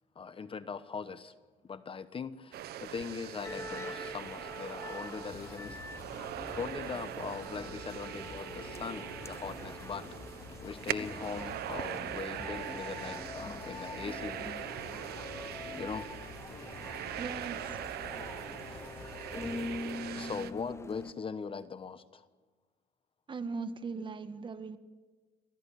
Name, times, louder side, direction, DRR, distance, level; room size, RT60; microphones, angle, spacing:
voice 1, 0.1-1.3 1.6-5.8 6.5-10.1 10.6-14.4 15.8-16.1 18.7-18.9 20.1-22.3, left 5 dB, 30° left, 13 dB, 1.1 m, -40 dB
sound 1, 2.5-20.5, right 12 dB, 70° right, 1.1 m, -42 dB
sound 2, 3.4-21.1, left 3 dB, 15° left, 0.7 m, -44 dB
sound 3, 5.3-20.5, left 4 dB, 60° left, 2.9 m, -51 dB
voice 2, 17.2-17.7 23.3-24.8, right 4 dB, 30° right, 10 dB, 1.7 m, -39 dB
27.0 x 15.5 x 10.0 m, 1.4 s
cardioid pair, 110°, 17 cm